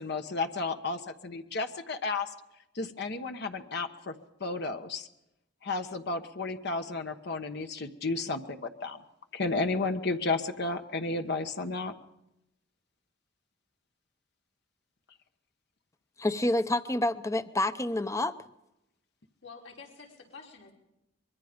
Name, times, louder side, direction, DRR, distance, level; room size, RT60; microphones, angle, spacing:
voice 1, 0.0-2.3 2.7-4.1 4.4-5.1 5.6-9.0 9.3-11.9, left 3 dB, 60° left, 1.2 m, -32 dB
voice 2, 16.2-18.3, left 1 dB, 15° left, 0.7 m, -28 dB
voice 3, 19.4-20.7, left 4 dB, 80° left, 5.7 m, -48 dB
24.0 x 22.5 x 5.2 m
head